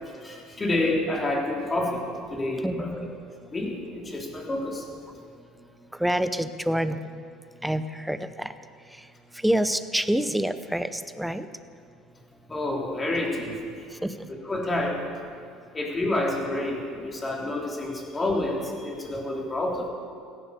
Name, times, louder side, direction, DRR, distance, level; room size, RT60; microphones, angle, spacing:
voice 1, 0.2-2.0 2.3-3.0 3.5-4.9 12.5-13.7 14.4-15.0 15.7-19.9, left 2 dB, 20° left, -1 dB, 3.8 m, -28 dB
voice 2, 2.6-3.1 6.0-7.0 7.6-8.5 9.4-11.5 14.0-14.3, right 1 dB, 5° right, 11 dB, 0.8 m, -27 dB
16.5 x 11.0 x 6.9 m, 2.4 s
supercardioid pair, 85°, 0 cm